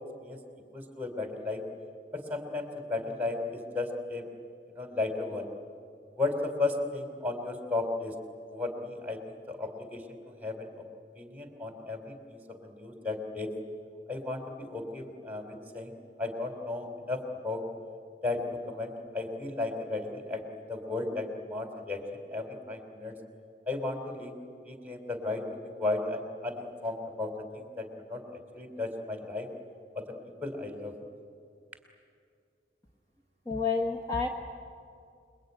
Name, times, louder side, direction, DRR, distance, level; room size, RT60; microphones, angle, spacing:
voice 1, 0.7-1.6 2.1-4.2 4.7-5.5 6.1-8.1 8.5-10.8 11.1-13.5 14.1-15.9 16.2-17.6 18.2-22.0 22.3-23.1 23.7-24.3 24.6-28.2 28.5-29.5 29.9-30.0 30.4-30.9, left 3 dB, 10° right, 5 dB, 3.4 m, -34 dB
voice 2, 33.5-34.3, left 4 dB, 20° left, 1 dB, 1.4 m, -29 dB
28.0 x 22.0 x 9.4 m, 2.4 s
head